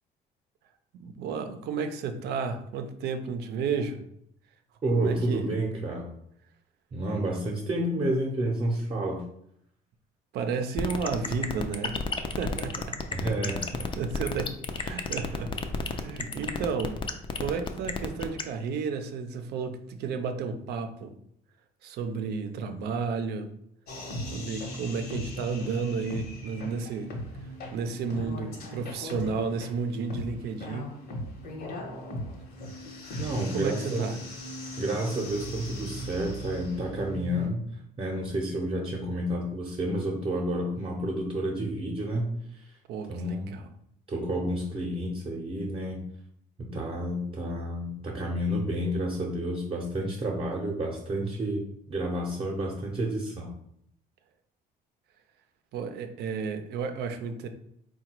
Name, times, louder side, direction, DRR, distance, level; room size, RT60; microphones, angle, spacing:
voice 1, 0.9-4.0 4.9-5.5 10.3-12.0 12.3-13.0 14.0-14.5 14.8-17.0 17.4-21.1 21.8-23.5 24.3-27.1 27.4-30.9 33.4-34.2 42.9-43.7 55.7-57.5, right 5 dB, 75° right, 7 dB, 0.6 m, -32 dB
voice 2, 4.8-6.1 6.9-9.2 13.1-13.9 14.9-15.1 33.2-34.1 34.8-37.6 38.0-42.7 43.1-43.5 44.1-46.0 46.6-51.6 51.9-53.5, right 1 dB, 35° right, -2 dB, 0.7 m, -30 dB
sound 1, 10.8-18.4, left 5 dB, 30° left, 0.4 m, -31 dB
sound 2, 23.9-37.5, equal, 70° left, 1.0 m, -38 dB
3.8 x 2.3 x 4.4 m, 0.72 s
cardioid pair, 110°, 17 cm